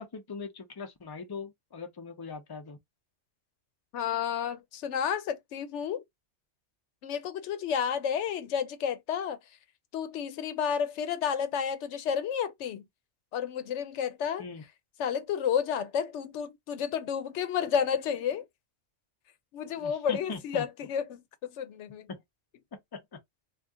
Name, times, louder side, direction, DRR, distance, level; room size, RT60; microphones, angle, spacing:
voice 1, 0.0-2.8 14.4-14.6 19.8-20.6 22.1-22.2 22.7-23.2, left 4 dB, 25° left, 0.5 m, -41 dB
voice 2, 3.9-6.0 7.0-9.4 9.9-12.8 13.3-14.5 15.0-18.5 19.5-22.1, left 8 dB, 85° left, 0.9 m, -31 dB
2.6 x 2.4 x 3.5 m
omnidirectional pair, 1.2 m